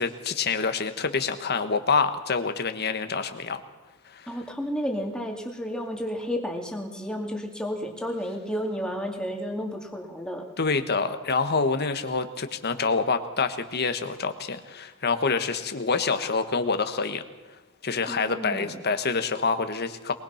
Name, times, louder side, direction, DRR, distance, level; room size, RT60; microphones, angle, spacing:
voice 1, 0.0-3.6 4.1-4.4 10.6-17.2 17.8-20.1, left 4 dB, 50° left, 8 dB, 1.5 m, -26 dB
voice 2, 4.3-10.4 18.1-18.7, equal, 5° left, 1 dB, 2.5 m, -32 dB
22.5 x 20.5 x 5.9 m, 1.1 s
head